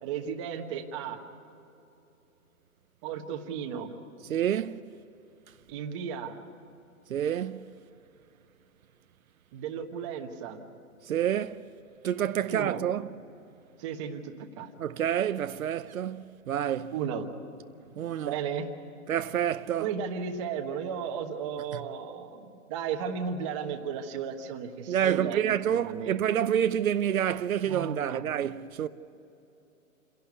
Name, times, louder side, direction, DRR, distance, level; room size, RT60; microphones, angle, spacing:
voice 1, 0.0-1.2 3.0-3.9 5.7-6.4 9.5-10.6 12.4-12.8 13.8-14.7 16.9-17.3 18.2-18.7 19.8-26.2 27.7-28.3, right 7 dB, 20° right, 1.3 m, -34 dB
voice 2, 4.3-4.8 7.1-7.7 11.1-11.6 12.0-13.1 14.8-16.9 18.0-18.3 19.1-19.9 24.9-28.9, right 10 dB, 75° right, 0.8 m, -28 dB
28.5 x 11.5 x 9.5 m
hypercardioid pair, 165°, 42 cm